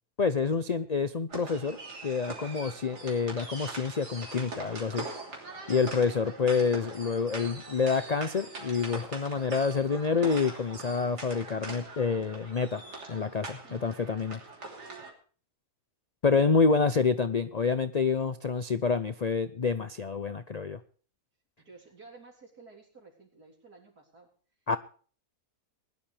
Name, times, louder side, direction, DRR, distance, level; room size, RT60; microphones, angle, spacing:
voice 1, 0.2-5.1 5.7-12.8 13.1-14.4 16.2-20.8 24.7-24.8, left 5 dB, 65° left, 12 dB, 0.4 m, -28 dB
sound 1, 1.3-15.1, right 3 dB, 90° right, 3.7 m, -42 dB
voice 2, 13.6-14.0 18.2-18.3 21.6-24.3, right 4 dB, 70° right, 0 dB, 4.2 m, -53 dB
20.5 x 11.5 x 3.4 m, 0.41 s
omnidirectional pair, 1.7 m